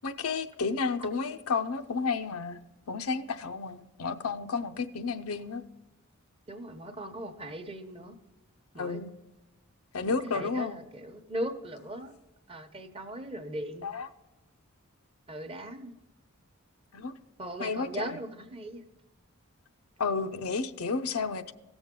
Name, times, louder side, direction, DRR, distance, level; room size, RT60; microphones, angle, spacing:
voice 1, 0.0-2.6 2.9-5.6 8.8-9.1 9.9-10.8 13.8-14.1 16.9-17.1 17.6-18.2 20.0-21.5, left 4 dB, 75° left, 0.6 m, -31 dB
voice 2, 6.5-8.2 8.7-9.0 10.1-12.1 12.5-13.9 15.3-15.9 17.4-18.8, right 1 dB, 25° right, 0.9 m, -39 dB
17.0 x 7.1 x 3.7 m
head